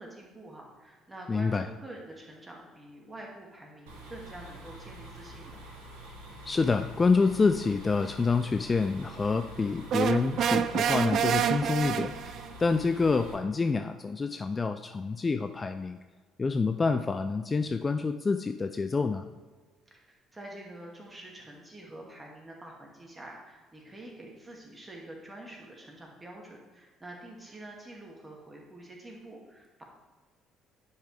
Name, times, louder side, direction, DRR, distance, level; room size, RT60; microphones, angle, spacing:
voice 1, 0.0-5.6 19.9-29.8, right 1 dB, 20° right, -1 dB, 2.2 m, -47 dB
voice 2, 1.3-1.7 6.5-16.0 16.4-19.2, left 4 dB, 30° left, 8 dB, 0.4 m, -27 dB
sound 1, 3.9-13.3, right 1 dB, 75° right, 1.5 m, -46 dB
sound 2, 9.9-12.5, right 9 dB, 55° right, 0.3 m, -27 dB
10.0 x 5.5 x 3.4 m, 1.4 s
figure-of-eight pair, 50°, 0 cm